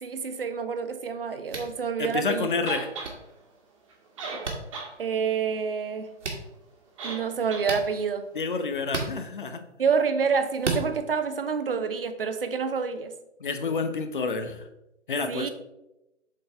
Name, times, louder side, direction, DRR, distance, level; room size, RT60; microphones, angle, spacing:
voice 1, 0.0-2.5 5.0-6.1 7.0-8.3 9.8-13.1 15.3-15.5, right 6 dB, 50° right, 9 dB, 0.8 m, -28 dB
sound 1, 1.5-1.7 3.0-3.1 4.4-4.6 6.2-6.4 7.6-7.9 8.9-9.1 10.6-10.8, right 3 dB, 70° right, 1.7 m, -30 dB
voice 2, 2.0-2.9 8.3-9.6 13.4-14.6 15.1-15.5, left 4 dB, 40° left, 8 dB, 0.8 m, -29 dB
sound 2, 2.7-3.1 3.9-4.0 4.2-4.9 5.3-5.4 7.0-7.2 7.5-7.7, right 4 dB, 25° right, 1.4 m, -35 dB
7.6 x 4.0 x 4.4 m, 0.92 s
figure-of-eight pair, 150°, 37 cm